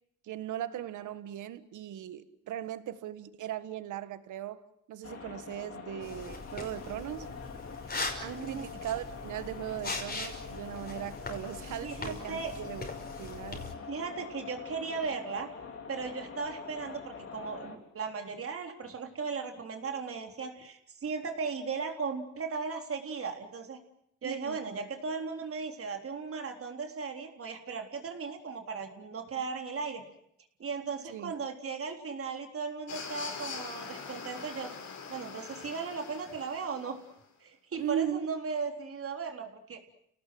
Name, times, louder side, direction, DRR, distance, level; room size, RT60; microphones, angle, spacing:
voice 1, 0.2-4.6 4.9-7.4 8.2-12.9 13.2-13.7 24.2-24.8 31.1-31.3 37.8-38.3, right 11 dB, 80° right, 13 dB, 1.6 m, -38 dB
sound 1, 5.0-17.8, left 5 dB, 50° left, 4.5 m, -44 dB
sound 2, 6.0-13.7, left 3 dB, 30° left, 5.8 m, -41 dB
voice 2, 8.3-8.6 11.8-12.6 13.9-15.5 15.9-23.8 24.2-30.0 30.6-34.7 35.1-37.0 37.4-39.8, right 5 dB, 50° right, 4 dB, 3.8 m, -37 dB
sound 3, 32.9-37.1, left 5 dB, 70° left, 6.3 m, -43 dB
30.0 x 18.5 x 7.7 m, 0.73 s
cardioid pair, 90°, 30 cm